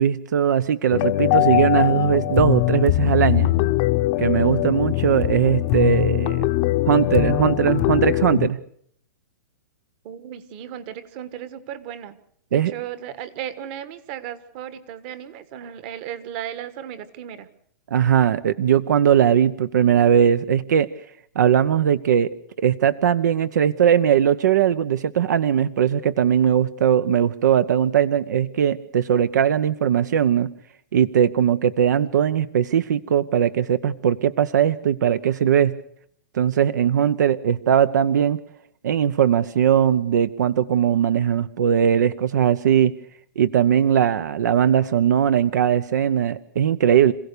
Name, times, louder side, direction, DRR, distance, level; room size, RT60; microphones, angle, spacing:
voice 1, 0.0-3.5 4.2-6.5 6.9-8.6 12.5-12.7 17.9-20.9 21.4-22.3 22.6-30.5 30.9-35.8 36.3-38.4 38.8-42.9 43.4-47.1, right 9 dB, 70° right, 15 dB, 0.9 m, -19 dB
sound 1, 0.9-8.5, left 17 dB, 30° left, 0.8 m, -21 dB
voice 2, 10.0-12.2 12.5-17.5, right 10 dB, 35° right, 14 dB, 1.4 m, -35 dB
27.0 x 16.0 x 6.8 m, 0.65 s
hypercardioid pair, 165°, 10 cm